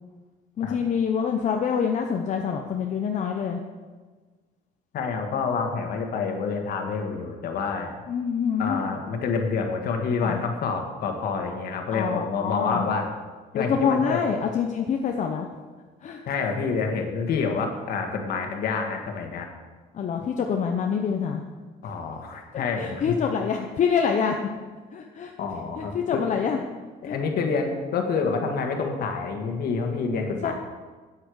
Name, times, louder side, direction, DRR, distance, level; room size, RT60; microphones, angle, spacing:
voice 1, 0.6-3.6 8.1-8.8 10.2-10.4 11.9-12.9 13.5-15.5 16.0-16.2 19.9-21.4 21.8-21.9 22.8-24.4 24.9-25.3 25.8-26.6 27.1-27.2 30.4-30.5, left 6 dB, 45° left, 3 dB, 0.9 m, -26 dB
voice 2, 4.9-8.0 8.6-13.1 13.5-14.2 16.3-19.5 21.8-23.2 25.4-26.2 27.0-30.5, left 5 dB, 65° left, 3 dB, 1.8 m, -28 dB
8.8 x 8.2 x 6.3 m, 1.4 s
cardioid pair, 110°, 17 cm